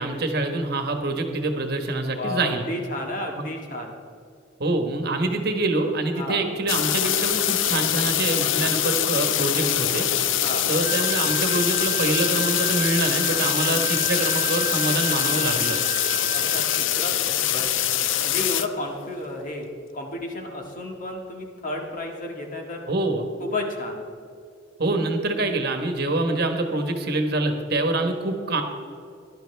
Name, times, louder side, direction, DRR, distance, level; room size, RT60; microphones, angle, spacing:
voice 1, 0.0-2.6 3.4-3.5 4.6-10.1 10.7-15.8 22.9-23.2 24.8-28.6, right 2 dB, 55° right, 5 dB, 1.3 m, -25 dB
voice 2, 2.1-3.9 6.2-6.4 10.4-10.7 16.3-17.7 18.2-19.7 19.9-22.8 23.4-24.0, left 2 dB, 45° left, 1 dB, 1.8 m, -32 dB
sound 1, 6.7-18.7, left 11 dB, 80° left, 0.6 m, -24 dB
sound 2, 10.8-16.9, right 6 dB, 20° right, 0.4 m, -34 dB
16.5 x 11.5 x 3.4 m, 2.4 s
head